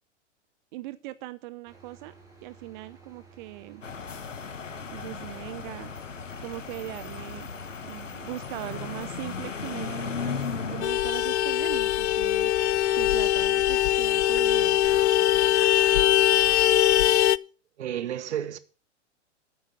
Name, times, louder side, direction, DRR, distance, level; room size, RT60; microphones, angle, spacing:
voice 1, 0.7-2.1 2.4-3.8 4.9-5.9 6.4-7.5 7.9-12.5 12.9-14.8, right 17 dB, 40° right, 0.7 m, -40 dB
sound 1, 1.7-14.8, right 4 dB, 10° right, 4.1 m, -53 dB
sound 2, 3.8-10.9, left 5 dB, 85° left, 1.5 m, -36 dB
Vehicle horn car horn honking, 10.8-17.4, left 13 dB, 65° left, 0.5 m, -22 dB
voice 2, 17.8-18.6, right 10 dB, 65° right, 1.2 m, -31 dB
8.9 x 8.9 x 7.1 m
figure-of-eight pair, 110°, 37 cm